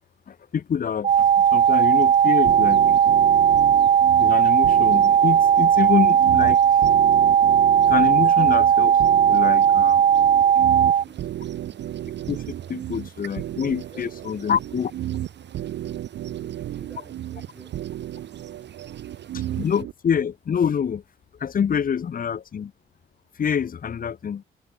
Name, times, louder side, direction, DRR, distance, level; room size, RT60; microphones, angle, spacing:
voice 1, 0.3-2.8 4.1-6.6 7.9-8.9 9.3-10.0 12.3-12.4 12.7-14.9 19.5-21.0 21.4-22.7 23.4-24.4, left 7 dB, 45° left, 1.3 m, -26 dB
sound 1, 1.0-11.0, right 9 dB, 35° right, 0.3 m, -17 dB
sound 2, 1.1-19.8, right 9 dB, 60° right, 7.5 m, -47 dB
sound 3, 2.5-19.9, right 12 dB, 75° right, 2.9 m, -34 dB
voice 2, 8.3-8.6 21.9-22.2, right 1 dB, 5° right, 7.9 m, -55 dB
cardioid pair, 90°, 20 cm